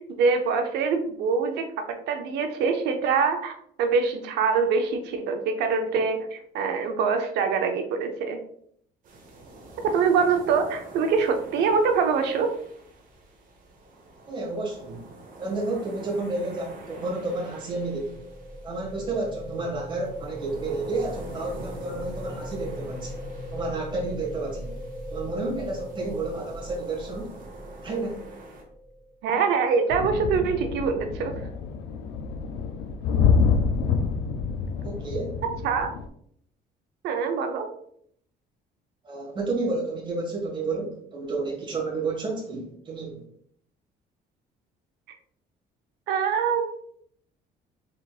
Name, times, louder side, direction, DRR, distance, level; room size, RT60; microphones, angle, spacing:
voice 1, 0.2-8.4 9.8-12.5 29.2-31.3 35.4-36.0 37.0-37.7 46.1-46.7, right 5 dB, 80° right, 6 dB, 0.7 m, -24 dB
sound 1, 9.0-28.6, right 2 dB, 50° right, 1.1 m, -46 dB
voice 2, 14.3-15.1 15.4-18.2 18.6-23.2 23.5-24.8 25.1-27.3 27.8-28.3 34.8-35.4 39.0-43.2, right 3 dB, 30° right, -2 dB, 1.7 m, -31 dB
sound 2, 17.4-29.3, equal, ahead, 1.4 m, -39 dB
sound 3, 29.9-36.1, left 5 dB, 85° left, 0.5 m, -26 dB
4.3 x 4.0 x 2.4 m, 0.67 s
cardioid pair, 110°, 17 cm